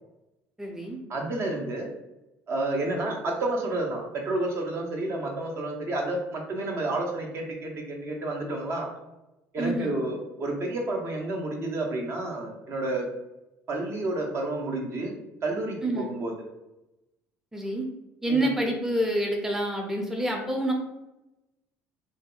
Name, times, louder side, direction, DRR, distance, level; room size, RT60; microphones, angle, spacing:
voice 1, 0.6-1.0 9.6-10.0 15.8-16.1 17.5-17.8 18.2-20.7, right 1 dB, 5° right, 1 dB, 0.5 m, -27 dB
voice 2, 1.1-1.9 2.5-8.9 9.5-13.1 13.7-15.1 15.4-16.3 18.3-18.4, right 2 dB, 45° right, 1 dB, 0.6 m, -30 dB
2.6 x 2.1 x 2.3 m, 0.97 s
supercardioid pair, 80°, 6 cm